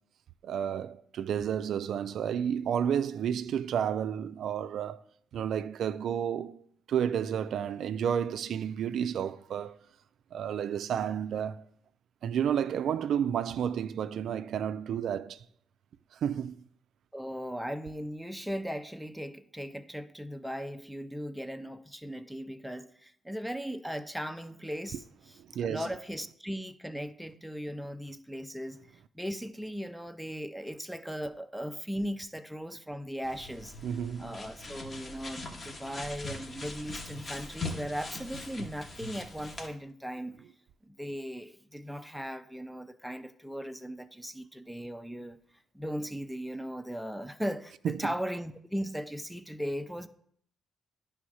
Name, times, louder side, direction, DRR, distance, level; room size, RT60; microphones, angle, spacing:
voice 1, 0.4-5.0 5.3-6.6 6.9-9.8 10.3-11.6 12.2-15.4 16.2-16.6 25.5-25.9 33.8-34.4, right 8 dB, 70° right, 0.3 m, -31 dB
voice 2, 17.1-25.0 25.6-28.8 29.1-33.7 34.2-40.4 40.9-45.4 45.7-50.1, equal, ahead, 0.5 m, -38 dB
sound 1, 33.2-39.7, left 2 dB, 35° left, 1.1 m, -41 dB
9.9 x 3.4 x 6.3 m
cardioid pair, 90°, 0 cm